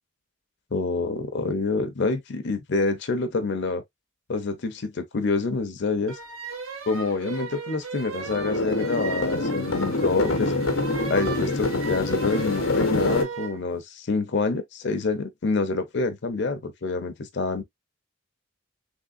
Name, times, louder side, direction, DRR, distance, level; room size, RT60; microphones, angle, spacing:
voice 1, 0.7-3.8 4.3-6.2 6.9-10.5 11.1-17.6, left 3 dB, 60° left, 0.7 m, -27 dB
sound 1, 6.1-13.6, right 4 dB, 80° right, 0.8 m, -37 dB
sound 2, 8.2-13.2, left 2 dB, 85° left, 0.9 m, -25 dB
3.6 x 3.2 x 2.5 m
head